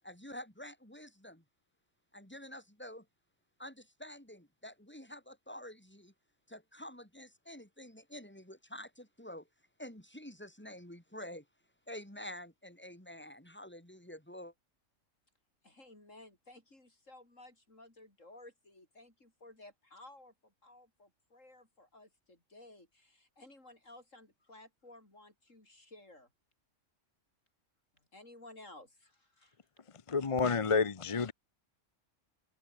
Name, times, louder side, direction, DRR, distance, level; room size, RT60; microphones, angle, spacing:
voice 1, 0.0-1.4 2.1-3.1 3.6-6.1 6.5-9.5 9.8-11.5 11.9-14.5, left 1 dB, 10° left, 5.6 m, -48 dB
voice 2, 15.6-26.3 28.1-29.6, left 2 dB, 80° left, 6.7 m, -56 dB
voice 3, 30.1-31.3, left 5 dB, 30° left, 0.7 m, -29 dB
open air
omnidirectional pair, 1.3 m